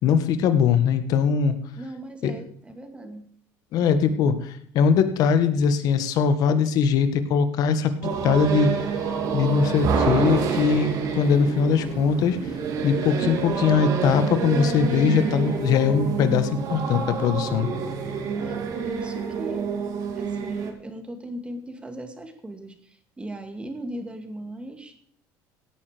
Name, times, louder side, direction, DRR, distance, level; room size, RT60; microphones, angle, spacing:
voice 1, 0.0-1.6 2.2-2.3 3.7-8.8 9.3-12.4 12.8-17.7, left 6 dB, 60° left, 10 dB, 1.6 m, -21 dB
voice 2, 1.7-3.3 18.4-19.7 20.2-25.0, right 1 dB, 15° right, 6 dB, 2.2 m, -38 dB
sound 1, 8.0-20.7, right 6 dB, 60° right, 2.6 m, -27 dB
17.0 x 9.2 x 5.2 m, 0.63 s
cardioid pair, 120°, 7 cm